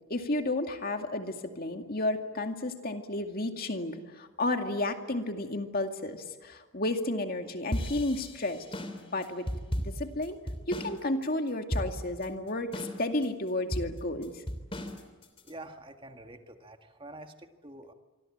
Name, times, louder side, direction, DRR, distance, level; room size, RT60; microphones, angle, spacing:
voice 1, 0.1-8.7 9.0-9.5 9.8-10.4 10.7-14.3, left 2 dB, 45° left, 5 dB, 2.3 m, -32 dB
sound 1, 7.7-11.0 11.2-11.3 11.7-12.2 12.7-13.2 13.7-15.5, equal, 25° left, 3.1 m, -35 dB
voice 2, 15.4-17.9, right 2 dB, 25° right, 6 dB, 1.7 m, -47 dB
26.5 x 24.5 x 8.8 m, 1.4 s
head